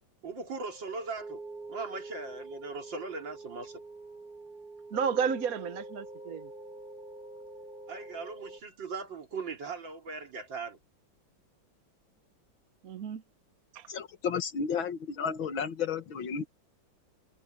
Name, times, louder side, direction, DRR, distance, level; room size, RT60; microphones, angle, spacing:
voice 1, 0.2-1.4 1.7-3.8 7.9-10.8, right 4 dB, 70° right, 4.1 m, -39 dB
sound 1, 0.6-8.6, right 2 dB, 25° right, 3.6 m, -45 dB
voice 2, 4.9-6.5 12.8-13.2 13.7-13.9, right 7 dB, 55° right, 1.3 m, -32 dB
voice 3, 13.9-16.5, left 6 dB, 85° left, 2.4 m, -32 dB
omnidirectional pair, 2.1 m